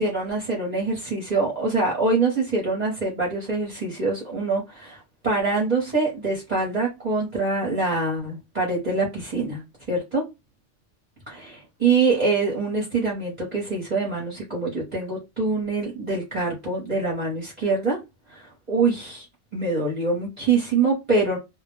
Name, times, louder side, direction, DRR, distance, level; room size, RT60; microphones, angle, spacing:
voice 1, 0.0-10.2 11.3-18.0 18.3-19.3 19.5-21.4, right 3 dB, 40° right, 0.9 m, -24 dB
2.2 x 2.1 x 3.0 m
omnidirectional pair, 1.2 m